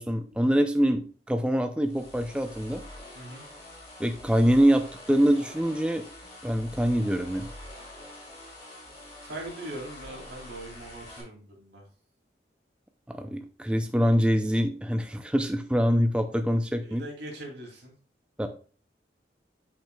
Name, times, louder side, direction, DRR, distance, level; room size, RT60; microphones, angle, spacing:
voice 1, 0.0-2.8 4.0-6.0 6.4-7.5 13.1-17.0 18.4-18.5, equal, 5° right, 6 dB, 0.4 m, -24 dB
sound 1, 1.8-11.2, left 1 dB, 35° left, 2.4 m, -45 dB
voice 2, 3.1-3.4 8.6-8.8 9.2-11.8 16.7-17.9, right 1 dB, 80° right, -1 dB, 2.6 m, -41 dB
8.7 x 5.8 x 2.2 m, 0.39 s
head